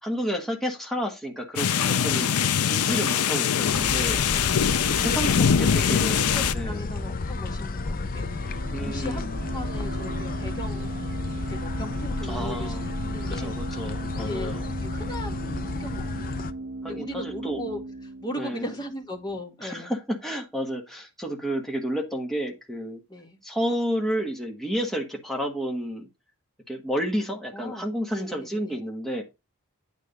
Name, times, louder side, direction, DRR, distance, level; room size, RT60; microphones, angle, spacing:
voice 1, 0.0-2.3 2.7-4.3 4.6-6.2 6.5-6.9 8.7-9.4 12.2-12.9 13.3-14.6 16.8-17.6 18.4-18.7 19.6-23.0 23.4-26.1 26.7-29.2, equal, ahead, 1.3 m, -31 dB
sound 1, 1.6-6.5, left 8 dB, 90° left, 0.6 m, -23 dB
sound 2, 3.7-16.5, left 3 dB, 40° left, 0.6 m, -31 dB
voice 2, 5.9-13.6 14.2-14.6 14.8-16.5 16.9-19.9 23.1-23.4 27.5-28.8, equal, 20° left, 1.9 m, -38 dB
sound 3, 8.2-19.6, right 2 dB, 45° right, 1.6 m, -37 dB
9.2 x 3.4 x 6.6 m
head